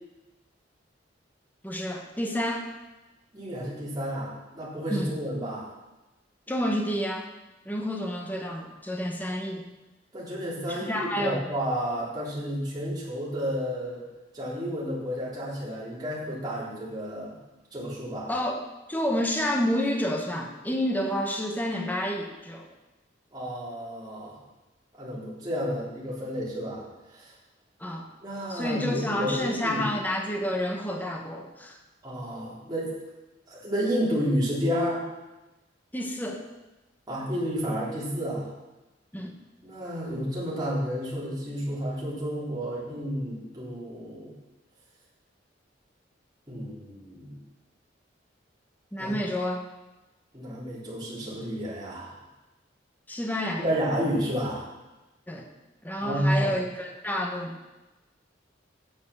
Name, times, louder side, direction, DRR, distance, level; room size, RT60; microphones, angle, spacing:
voice 1, 1.6-2.7 4.9-5.1 6.5-7.3 7.6-9.6 10.7-11.4 18.3-18.6 18.9-22.7 27.8-28.1 28.5-31.8 35.9-36.4 39.1-39.4 48.9-49.6 53.1-53.7 55.3-55.5 55.8-57.6, equal, 10° left, 2 dB, 1.1 m, -29 dB
voice 2, 3.3-5.7 10.1-14.0 14.3-17.4 17.7-18.3 23.3-24.4 25.0-27.3 28.2-29.9 32.0-32.9 33.5-35.0 37.1-38.5 39.6-44.3 46.5-47.4 49.0-49.2 50.3-52.2 53.6-54.7 56.0-56.6, equal, 20° right, -7 dB, 3.5 m, -31 dB
8.5 x 7.1 x 6.9 m, 1.1 s
head